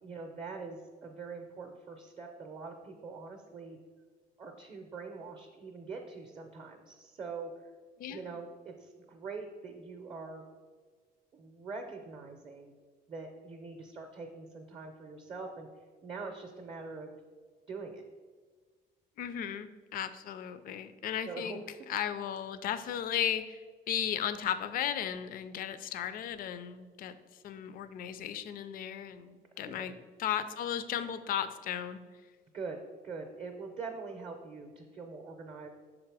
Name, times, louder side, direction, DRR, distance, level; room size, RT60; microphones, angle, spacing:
voice 1, 0.0-3.8 4.4-7.7 8.1-10.4 11.3-12.8 13.1-15.7 16.0-17.1 17.7-18.0 21.2-21.6 29.6-30.0 32.5-32.8 33.0-35.7, right 4 dB, 35° right, 3 dB, 0.6 m, -43 dB
voice 2, 8.0-8.3 19.2-23.6 23.9-27.2 27.4-32.0, left 9 dB, 55° left, 12 dB, 0.4 m, -35 dB
6.3 x 3.7 x 4.7 m, 1.5 s
cardioid pair, 145°, 17 cm